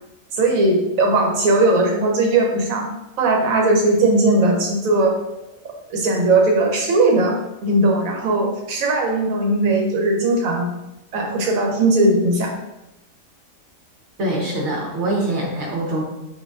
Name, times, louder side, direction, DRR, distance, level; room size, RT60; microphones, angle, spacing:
voice 1, 0.3-2.9 3.2-5.2 5.9-10.7 11.1-12.5, right 2 dB, 85° right, 1 dB, 1.2 m, -18 dB
voice 2, 14.2-16.0, right 1 dB, 60° right, -1 dB, 1.2 m, -23 dB
5.7 x 2.6 x 2.4 m, 0.94 s
omnidirectional pair, 1.4 m